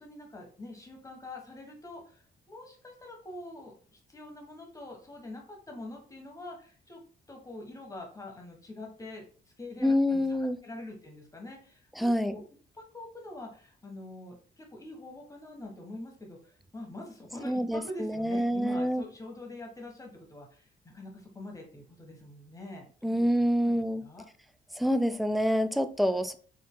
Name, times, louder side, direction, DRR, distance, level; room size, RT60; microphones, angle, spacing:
voice 1, 0.0-7.0 7.3-9.2 9.6-10.2 10.6-12.4 12.7-24.3, left 2 dB, 15° left, 1 dB, 1.3 m, -45 dB
voice 2, 9.8-10.6 12.0-12.3 17.4-19.0 23.0-24.0 24.8-26.3, equal, ahead, 11 dB, 0.3 m, -27 dB
4.5 x 3.4 x 2.2 m, 0.42 s
cardioid pair, 90°, 20 cm